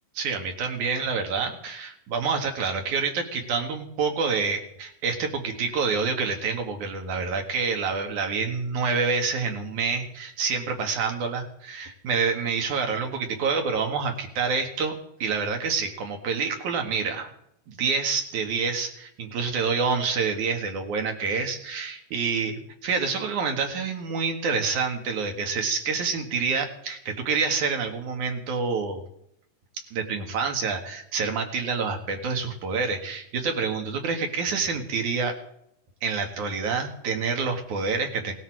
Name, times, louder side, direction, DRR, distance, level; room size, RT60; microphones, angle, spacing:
voice 1, 0.1-14.9 15.2-17.3 17.7-22.5 22.8-29.0 29.9-35.3 36.0-38.3, right 5 dB, 70° right, 4 dB, 3.3 m, -27 dB
19.0 x 13.0 x 4.8 m, 0.75 s
omnidirectional pair, 3.6 m